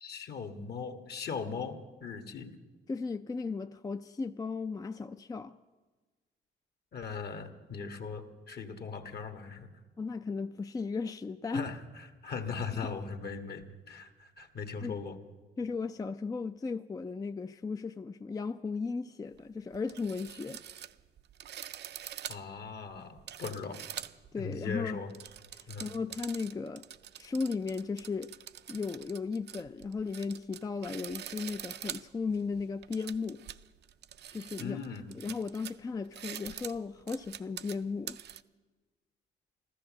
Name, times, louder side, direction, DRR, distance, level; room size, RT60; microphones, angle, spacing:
voice 1, 0.0-2.5 6.9-9.7 11.5-15.2 22.3-23.8 24.4-25.1 25.7-25.9 34.6-35.1, left 5 dB, 55° left, 1.5 m, -39 dB
voice 2, 2.9-5.5 10.0-11.7 14.8-15.0 15.6-20.6 24.3-25.0 25.5-26.8 27.2-28.3 28.7-33.4 34.3-34.8 35.1-38.2, left 4 dB, 20° left, 0.4 m, -36 dB
sound 1, 19.3-19.4 19.7-24.3 24.9-38.4, right 10 dB, 60° right, 0.5 m, -45 dB
14.0 x 13.0 x 7.3 m
cardioid pair, 90°, 20 cm